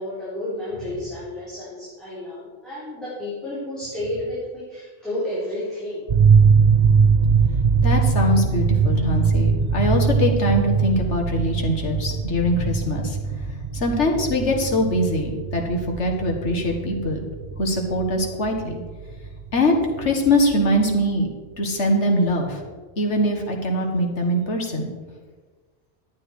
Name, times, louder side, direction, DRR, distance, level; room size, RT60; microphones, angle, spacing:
voice 1, 0.0-6.1, left 1 dB, ahead, -11 dB, 4.1 m, -31 dB
sound 1, 6.1-21.0, right 5 dB, 45° right, 0.9 m, -21 dB
voice 2, 7.8-13.2 13.7-17.2 17.6-18.8 19.5-21.3 21.6-22.6 23.0-24.9, left 1 dB, 75° left, 1 dB, 2.0 m, -22 dB
12.0 x 9.0 x 4.8 m, 1.4 s
omnidirectional pair, 1.2 m